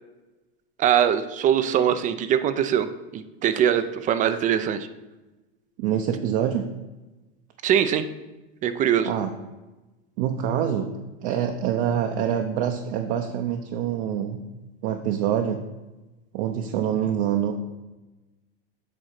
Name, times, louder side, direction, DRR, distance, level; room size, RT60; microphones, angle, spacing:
voice 1, 0.8-4.9 7.6-8.1 8.6-9.1, right 9 dB, 25° right, 11 dB, 0.4 m, -22 dB
voice 2, 5.8-6.6 9.1-9.3 10.2-10.9 11.2-14.4 14.8-15.6 16.3-17.5, right 9 dB, 60° right, 4 dB, 0.7 m, -25 dB
8.0 x 3.6 x 5.8 m, 1.1 s
supercardioid pair, 120°, 31 cm